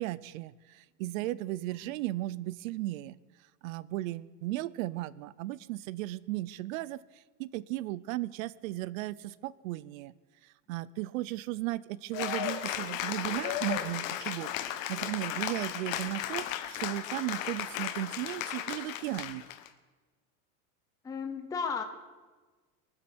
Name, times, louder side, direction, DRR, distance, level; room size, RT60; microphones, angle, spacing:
voice 1, 0.0-3.2 3.6-10.1 10.4-14.5 14.9-19.4, right 16 dB, 75° right, 20 dB, 0.7 m, -36 dB
Cheering / Applause, 12.1-19.7, left 11 dB, 70° left, 1.3 m, -35 dB
voice 2, 21.0-21.8, left 5 dB, 10° left, 5 dB, 0.8 m, -34 dB
23.0 x 8.0 x 6.1 m, 1.3 s
supercardioid pair, 165°, 41 cm